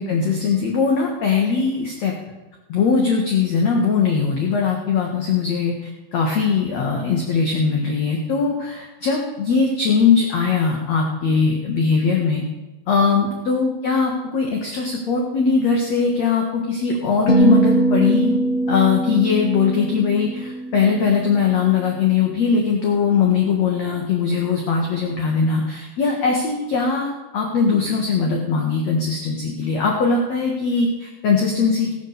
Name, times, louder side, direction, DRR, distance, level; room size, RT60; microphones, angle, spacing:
voice 1, 0.0-2.1 2.7-12.4 12.9-18.3 18.7-31.9, left 5 dB, 55° left, 0 dB, 2.1 m, -20 dB
sound 1, 17.3-21.6, right 2 dB, 35° left, 1.3 m, -21 dB
18.0 x 7.7 x 6.7 m, 1.1 s
omnidirectional pair, 4.9 m